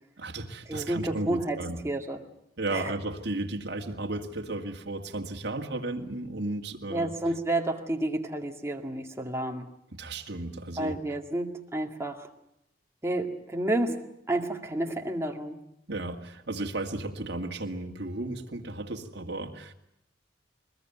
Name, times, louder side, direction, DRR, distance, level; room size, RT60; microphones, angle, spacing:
voice 1, 0.2-1.8 2.6-7.1 10.0-11.0 15.9-19.7, right 2 dB, 65° right, 1 dB, 2.1 m, -34 dB
voice 2, 0.7-2.2 2.7-2.9 6.9-9.7 10.8-12.3 13.0-15.6, right 1 dB, 15° right, 2 dB, 2.1 m, -30 dB
22.0 x 21.0 x 9.3 m, 0.80 s
head